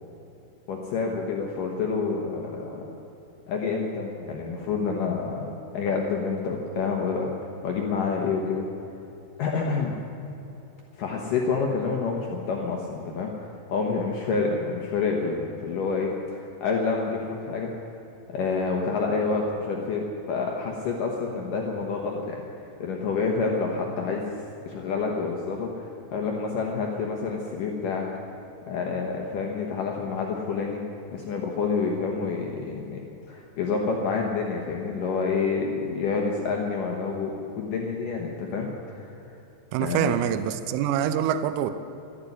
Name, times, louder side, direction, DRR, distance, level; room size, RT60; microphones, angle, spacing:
voice 1, 0.7-3.0 3.5-7.3 7.6-8.7 9.4-10.0 11.0-17.7 18.3-22.4 22.8-24.4 24.6-28.0 28.7-30.8 31.1-39.2 39.8-40.1, left 4 dB, 85° left, 0 dB, 1.9 m, -28 dB
voice 2, 39.7-41.7, right 10 dB, 90° right, 10 dB, 3.3 m, -25 dB
13.0 x 11.5 x 9.6 m, 2.9 s
omnidirectional pair, 5.6 m